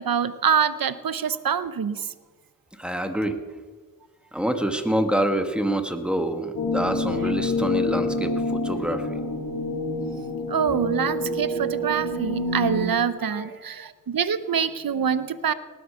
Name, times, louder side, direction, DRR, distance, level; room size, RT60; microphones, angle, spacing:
voice 1, 0.0-2.1 10.5-15.5, right 7 dB, 85° right, 14 dB, 0.7 m, -25 dB
voice 2, 2.8-3.4 4.3-9.2 13.3-13.5, right 1 dB, 5° right, 7 dB, 1.7 m, -26 dB
sound 1, 6.6-12.9, left 2 dB, 80° left, 1.9 m, -27 dB
18.5 x 8.4 x 6.9 m, 1.4 s
cardioid pair, 40°, 34 cm